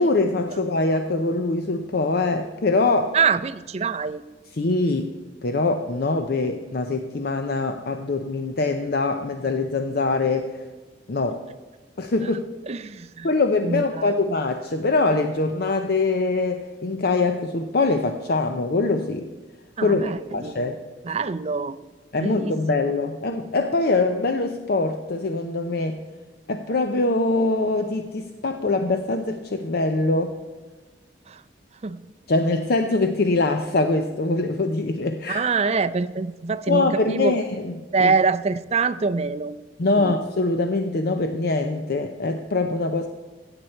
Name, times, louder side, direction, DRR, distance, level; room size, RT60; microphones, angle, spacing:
voice 1, 0.0-3.2 4.6-5.1 5.4-10.6 11.1-11.4 12.0-12.5 13.2-19.3 19.8-20.0 20.3-20.8 22.1-26.0 26.5-30.3 32.3-35.4 36.7-38.1 39.8-43.1, left 3 dB, 55° left, 6 dB, 0.6 m, -23 dB
voice 2, 3.1-4.2 12.7-13.3 13.6-14.1 19.8-20.6 21.0-21.8 22.2-22.6 31.3-31.4 31.8-32.0 35.3-37.3 37.9-39.5 40.0-40.1, right 4 dB, 35° right, 13 dB, 0.4 m, -24 dB
16.0 x 8.2 x 4.4 m, 1.3 s
head